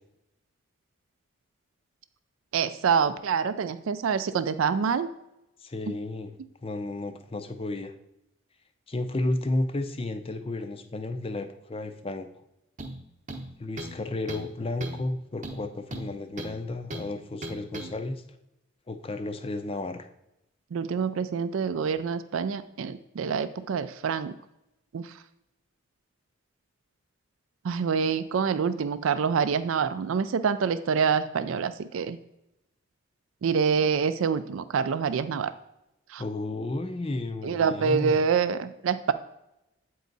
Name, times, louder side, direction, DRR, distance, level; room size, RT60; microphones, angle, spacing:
voice 1, 2.5-5.1 20.7-24.3 24.9-25.0 27.6-32.2 33.4-35.5 36.1-36.2 37.4-39.1, right 6 dB, 80° right, 12 dB, 0.4 m, -26 dB
voice 2, 5.6-6.3 6.6-7.9 8.9-12.3 13.6-18.2 18.9-20.1 36.2-38.2, left 2 dB, 25° left, 8 dB, 0.5 m, -32 dB
sound 1, 12.8-13.0 13.3-14.0 14.3-14.5 14.8-15.0 15.4-16.6 16.9-17.1 17.4-17.9, right 1 dB, 35° right, 0.8 m, -37 dB
8.3 x 4.6 x 4.0 m, 0.86 s
head